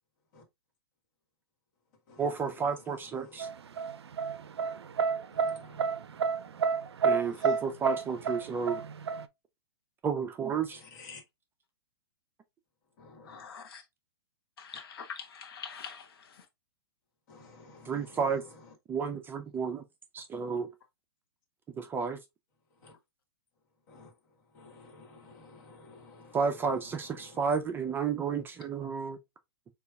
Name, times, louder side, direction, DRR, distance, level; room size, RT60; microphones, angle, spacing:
voice 1, 2.2-3.5 7.0-8.8 10.0-10.8 17.9-18.4 18.9-19.8 20.1-20.7 21.8-22.2 26.3-29.2, right 6 dB, 15° right, 0.4 m, -31 dB
sound 1, 3.4-9.3, right 5 dB, 80° right, 0.4 m, -29 dB
voice 2, 5.3-5.6 7.4-7.5 10.9-11.2 13.0-13.4 17.3-17.9 22.8-22.9 23.9-24.1 24.5-26.4, left 3 dB, 50° left, 1.5 m, -52 dB
voice 3, 13.3-13.8 14.6-16.0, left 6 dB, 65° left, 0.8 m, -43 dB
6.5 x 2.4 x 2.3 m
hypercardioid pair, 115°, 13 cm